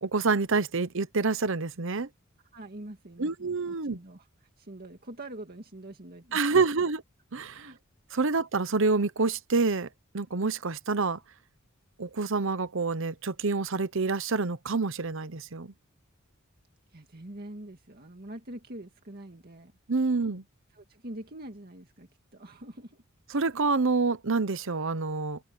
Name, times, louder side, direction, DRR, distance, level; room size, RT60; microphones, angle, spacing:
voice 1, 0.0-2.1 3.2-4.0 6.3-7.0 7.3-7.7 8.1-9.9 10.1-11.2 12.0-15.7 19.9-20.4 23.3-25.4, right 4 dB, 65° right, 0.9 m, -27 dB
voice 2, 2.5-4.3 4.6-6.8 7.5-7.8 16.9-19.7 20.7-23.0, right 1 dB, 45° right, 2.0 m, -45 dB
head